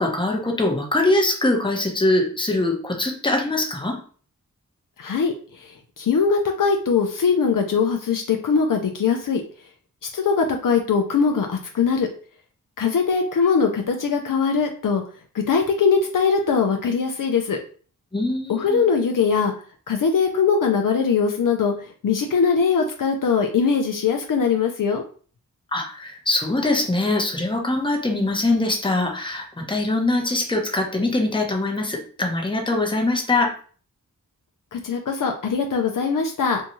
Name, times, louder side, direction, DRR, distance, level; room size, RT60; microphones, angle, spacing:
voice 1, 0.0-4.0 18.1-18.8 25.7-33.5, left 2 dB, 15° left, 1 dB, 0.8 m, -22 dB
voice 2, 5.0-9.4 10.1-12.1 12.8-15.0 15.3-17.6 18.5-19.5 19.9-25.0 34.7-36.6, left 5 dB, 65° left, 3 dB, 0.5 m, -21 dB
2.6 x 2.3 x 2.9 m, 0.42 s
cardioid pair, 50°, 35 cm